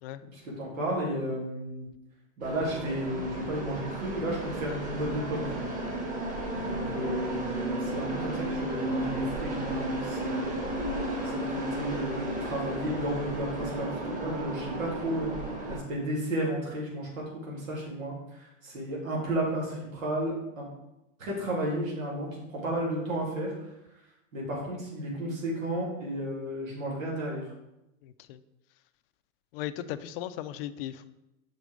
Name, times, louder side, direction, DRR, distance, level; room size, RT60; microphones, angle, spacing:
voice 1, 0.3-1.9 2.4-5.7 6.6-10.5 11.2-15.4 15.7-20.7 21.2-23.5 24.3-27.5, right 1 dB, 85° right, -4 dB, 2.8 m, -33 dB
sound 1, 2.4-15.8, right 1 dB, 20° right, 1.5 m, -33 dB
voice 2, 28.0-28.4 29.5-31.1, left 12 dB, 45° left, 12 dB, 0.5 m, -37 dB
6.1 x 5.3 x 4.7 m, 0.91 s
hypercardioid pair, 125°, 39 cm